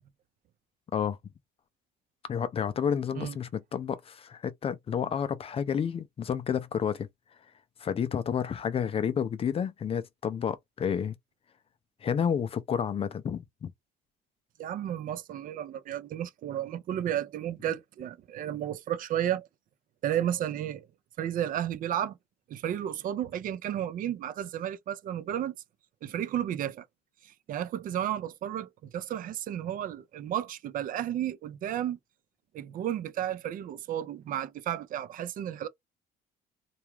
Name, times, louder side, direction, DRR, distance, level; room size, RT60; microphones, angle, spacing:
voice 1, 2.3-7.1 7.8-11.1 12.0-13.7, left 7 dB, 35° left, 0.4 m, -30 dB
voice 2, 14.6-19.5 20.0-20.9 21.2-22.2 22.5-25.6 26.0-26.9 27.2-32.0 32.5-35.7, right 11 dB, 55° right, 0.4 m, -33 dB
2.3 x 2.2 x 3.0 m
cardioid pair, 110°, 17 cm